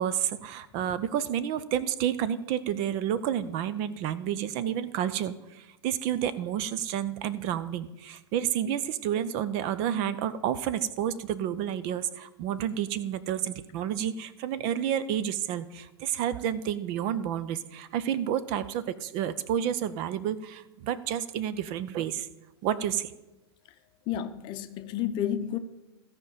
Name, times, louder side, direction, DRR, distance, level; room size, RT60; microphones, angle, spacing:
voice 1, 0.0-22.3 22.6-23.1, right 10 dB, 35° right, 0.5 m, -30 dB
voice 2, 24.1-25.6, left 10 dB, 35° left, 0.7 m, -31 dB
15.0 x 5.1 x 7.2 m
figure-of-eight pair, 100°, 14 cm